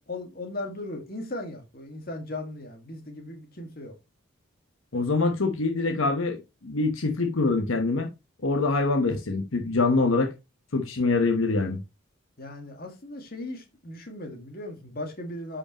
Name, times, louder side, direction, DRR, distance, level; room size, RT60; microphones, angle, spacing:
voice 1, 0.0-4.0 12.4-15.6, left 2 dB, 45° left, 1.8 m, -37 dB
voice 2, 4.9-6.4 6.6-8.1 8.4-10.3 10.7-11.8, left 3 dB, 75° left, 1.1 m, -24 dB
10.0 x 5.0 x 2.9 m
head